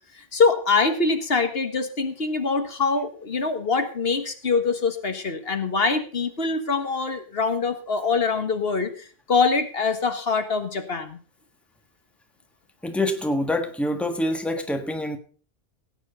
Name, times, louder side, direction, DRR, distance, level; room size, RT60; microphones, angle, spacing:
voice 1, 0.3-11.2, left 4 dB, 65° left, 1.7 m, -24 dB
voice 2, 12.8-15.2, left 1 dB, ahead, 1.4 m, -26 dB
17.0 x 9.2 x 4.0 m
omnidirectional pair, 1.1 m